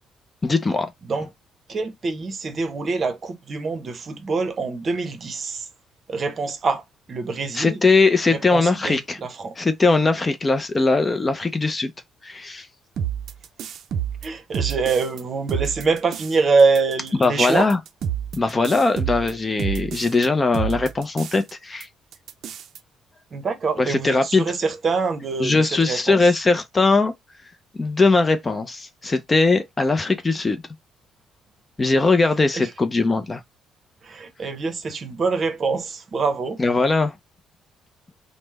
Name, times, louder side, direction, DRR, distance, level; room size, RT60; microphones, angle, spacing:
voice 1, 0.4-0.9 7.5-9.2 9.6-11.9 12.2-12.7 17.2-17.8 18.3-21.9 23.8-24.4 25.4-27.1 27.8-30.6 31.8-33.4 36.6-37.2, left 3 dB, 20° left, 0.5 m, -20 dB
voice 2, 1.7-5.7 6.1-7.8 8.3-9.6 14.2-17.7 23.3-26.2 32.6-32.7 34.0-36.6, right 4 dB, 40° right, 0.8 m, -24 dB
sound 1, 13.0-15.2 15.5-16.3 16.6-20.3 20.5-21.5 21.8-21.9 22.1-22.8, right 9 dB, 60° right, 0.4 m, -29 dB
3.2 x 2.0 x 3.3 m
cardioid pair, 110°, 0 cm